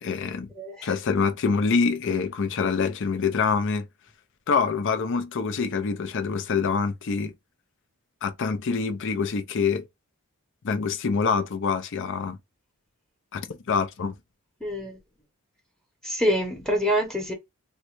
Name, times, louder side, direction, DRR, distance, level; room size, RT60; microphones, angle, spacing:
voice 1, 0.0-0.5 0.8-3.9 4.5-7.3 8.2-9.9 10.6-12.4 13.3-14.1, left 5 dB, 55° left, 0.5 m, -25 dB
voice 2, 0.6-0.9 14.6-15.0 16.0-17.3, equal, ahead, 0.9 m, -26 dB
3.8 x 2.2 x 3.0 m
head